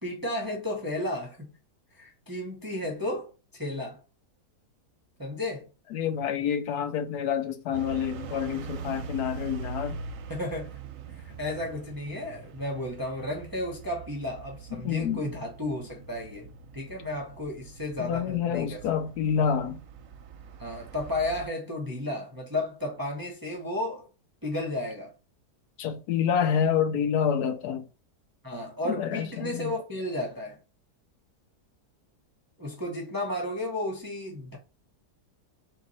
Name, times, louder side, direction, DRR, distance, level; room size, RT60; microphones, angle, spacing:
voice 1, 0.0-1.5 1.9-4.0 5.2-5.7 10.3-10.8 11.2-18.8 20.6-24.1 24.4-25.1 28.4-30.6 32.6-34.6, left 1 dB, 20° right, 0.6 m, -33 dB
voice 2, 5.9-10.0 14.7-15.3 18.0-19.8 25.8-27.8 28.9-29.7, left 8 dB, 75° left, 1.1 m, -28 dB
sound 1, 7.7-21.5, right 5 dB, 65° right, 0.9 m, -43 dB
3.7 x 3.0 x 4.0 m
omnidirectional pair, 1.8 m